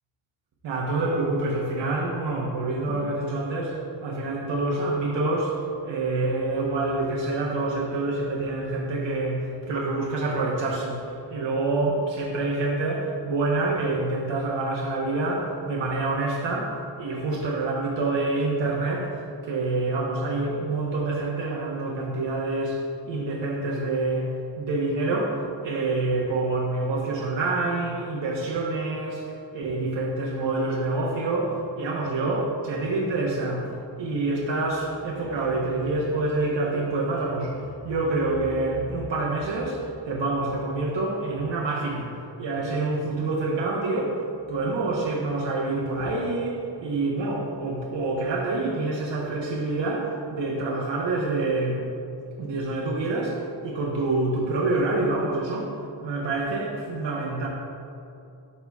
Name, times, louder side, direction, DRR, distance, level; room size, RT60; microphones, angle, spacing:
voice 1, 0.6-19.1 19.5-33.7 34.0-44.2 44.5-51.8 52.4-55.7 56.0-57.5, right 2 dB, 75° right, -3 dB, 1.1 m, -27 dB
13.0 x 5.7 x 2.3 m, 2.6 s
wide cardioid pair, 135°, 44 cm